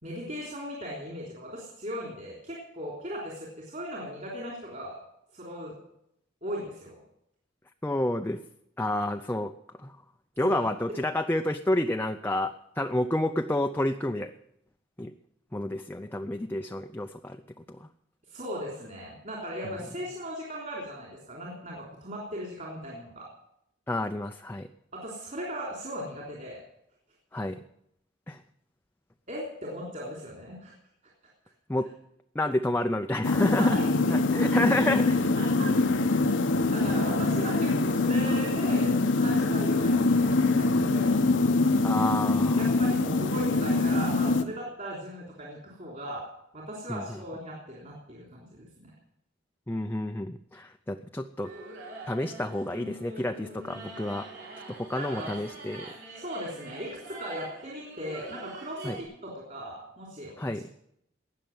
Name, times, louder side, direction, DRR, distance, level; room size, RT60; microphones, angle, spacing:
voice 1, 0.0-5.0 5.3-5.8 6.4-7.0 10.4-11.0 18.3-23.3 24.9-26.6 29.3-30.7 33.6-33.9 35.4-36.2 36.7-41.2 42.6-46.3 46.5-48.9 55.0-55.3 56.2-60.5, equal, 40° right, -2 dB, 3.5 m, -38 dB
voice 2, 7.8-8.4 8.8-9.5 9.8-9.9 10.4-14.3 15.0-15.1 15.5-17.8 23.9-24.7 27.3-27.6 28.3-28.4 31.7-31.9 32.3-33.8 34.1-35.4 36.5-36.7 41.8-42.6 46.9-47.0 49.7-51.5 52.1-54.3 54.7-55.9 58.8-59.0 60.4-60.6, left 1 dB, 10° left, 5 dB, 0.5 m, -29 dB
sound 1, 33.2-44.4, left 3 dB, 70° left, 0.9 m, -24 dB
sound 2, 51.4-59.0, right 2 dB, 85° right, 4.8 m, -44 dB
19.0 x 6.7 x 9.3 m, 0.78 s
head